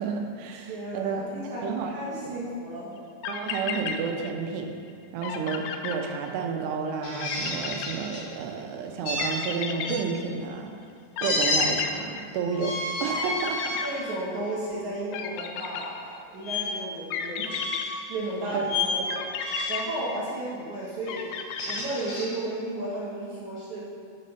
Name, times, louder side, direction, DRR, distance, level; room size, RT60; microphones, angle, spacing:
voice 1, 0.0-1.2 1.6-1.9 2.2-2.4 3.3-4.8 5.1-10.7 11.2-13.8 18.5-18.7, right 5 dB, 90° right, 3 dB, 2.8 m, -31 dB
voice 2, 0.5-3.0 13.8-17.6 18.1-19.2 19.7-21.3 21.7-23.8, right 1 dB, 65° right, -8 dB, 2.0 m, -33 dB
sound 1, 3.0-3.1 3.2-4.6 4.9-5.0 5.2-6.6 7.2-8.6 9.2-10.5 11.2-12.8 13.1-14.6 15.1-16.4 17.1-18.5 19.1-20.6 21.1-22.3, left 7 dB, 85° left, 2.1 m, -34 dB
sound 2, 7.0-8.2 9.0-10.0 11.2-11.6 12.5-13.8 14.4-14.6 16.4-16.6 17.5-18.0 18.7-19.0 19.4-19.9 21.3-22.3, left 3 dB, 65° left, 3.2 m, -30 dB
8.1 x 4.2 x 5.3 m, 2.2 s
omnidirectional pair, 4.7 m